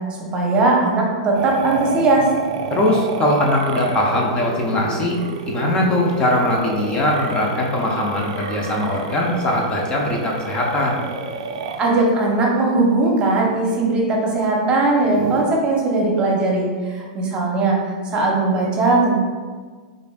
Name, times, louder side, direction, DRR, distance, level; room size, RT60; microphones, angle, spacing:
voice 1, 0.3-2.3 11.8-17.8 18.1-19.2, right 2 dB, 30° right, -1 dB, 0.8 m, -19 dB
sound 1, 1.3-12.1 15.0-15.4, right 4 dB, 75° right, 0.4 m, -29 dB
voice 2, 2.7-5.2 5.5-11.0, left 1 dB, 30° left, -1 dB, 0.6 m, -21 dB
4.9 x 2.5 x 2.3 m, 1.5 s
hypercardioid pair, 115°, 3 cm